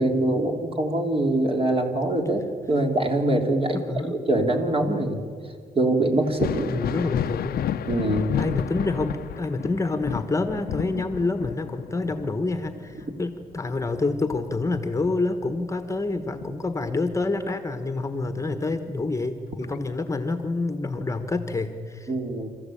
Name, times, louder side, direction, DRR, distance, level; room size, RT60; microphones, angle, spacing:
voice 1, 0.0-3.8 4.3-5.2 5.7-6.7 7.8-8.3 22.1-22.5, right 1 dB, 35° right, 3 dB, 3.3 m, -23 dB
voice 2, 3.7-4.2 6.7-7.6 8.4-22.1, left 3 dB, 20° left, 8 dB, 1.3 m, -27 dB
Thunder, 6.2-15.6 15.9-17.2 18.7-18.8 19.6-19.8, left 10 dB, 80° left, 0.7 m, -32 dB
27.5 x 14.5 x 8.7 m, 2.1 s
cardioid pair, 110°, 15 cm